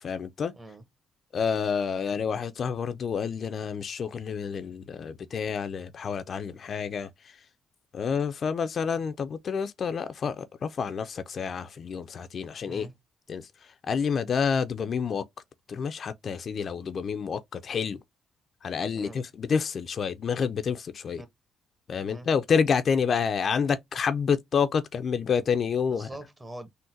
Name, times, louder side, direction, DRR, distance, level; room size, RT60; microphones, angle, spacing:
voice 1, 0.0-0.5 1.3-7.1 7.9-12.9 13.3-13.5 13.9-15.2 15.7-18.0 18.6-21.2 21.9-26.1, left 6 dB, 50° left, 0.3 m, -28 dB
voice 2, 25.9-26.7, right 1 dB, 20° right, 0.8 m, -43 dB
3.8 x 2.1 x 2.5 m
cardioid pair, 90°, 0 cm